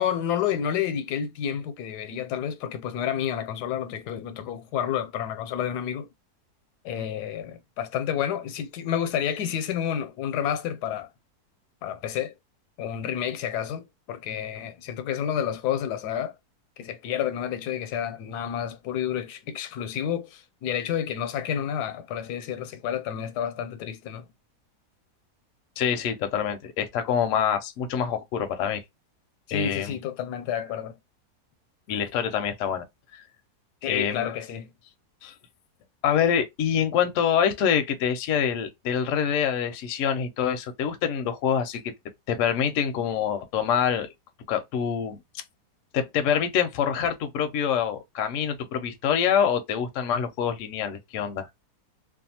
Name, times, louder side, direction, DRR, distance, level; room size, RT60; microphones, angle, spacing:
voice 1, 0.0-6.1 6.8-11.1 11.8-12.3 12.8-16.3 16.8-24.3 29.5-31.0 33.8-34.7, left 9 dB, 85° left, 1.1 m, -30 dB
voice 2, 25.8-28.8 29.5-29.9 31.9-32.9 33.1-33.2 33.8-34.3 35.2-35.3 36.0-41.8 42.3-44.1 44.5-45.2 45.9-51.5, left 8 dB, 70° left, 0.8 m, -25 dB
2.6 x 2.3 x 2.7 m
omnidirectional pair, 1.7 m